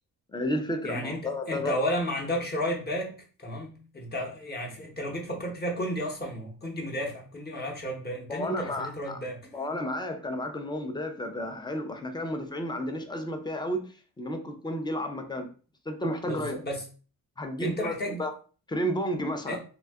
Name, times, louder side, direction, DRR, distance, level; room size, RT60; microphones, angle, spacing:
voice 1, 0.3-1.7 8.3-9.2 9.5-15.5 15.9-16.6 17.4-18.3 18.7-19.6, equal, 15° left, 6 dB, 0.4 m, -32 dB
voice 2, 0.8-9.4 16.2-16.8 17.6-18.2 19.5-19.6, equal, 30° left, 0 dB, 0.8 m, -33 dB
2.6 x 2.3 x 3.4 m, 0.38 s
wide cardioid pair, 130°, 34 cm